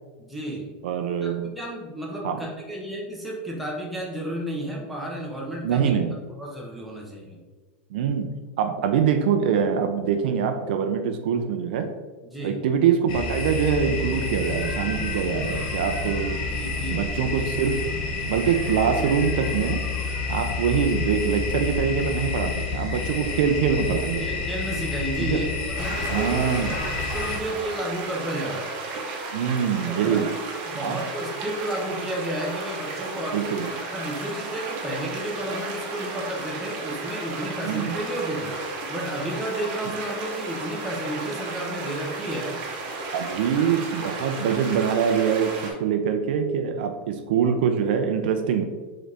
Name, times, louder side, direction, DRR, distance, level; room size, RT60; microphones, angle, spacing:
voice 1, 0.2-0.7 1.2-5.9 6.4-7.4 12.2-12.6 16.5-17.1 24.2-28.7 29.8-42.6, right 1 dB, ahead, -4 dB, 0.8 m, -32 dB
voice 2, 0.8-1.5 2.2-2.4 5.6-6.2 7.9-8.3 8.6-11.9 12.4-16.4 16.9-17.8 18.3-19.8 20.3-24.2 25.2-25.4 26.1-26.8 29.3-30.3 30.8-31.0 33.3-33.7 37.6-37.9 43.1-48.6, right 7 dB, 65° right, 6 dB, 0.4 m, -24 dB
sound 1, 13.1-27.4, left 4 dB, 60° left, 0.9 m, -29 dB
sound 2, 25.8-45.7, right 3 dB, 40° right, 0.9 m, -34 dB
4.0 x 3.7 x 3.4 m, 1.3 s
supercardioid pair, 160°, 6 cm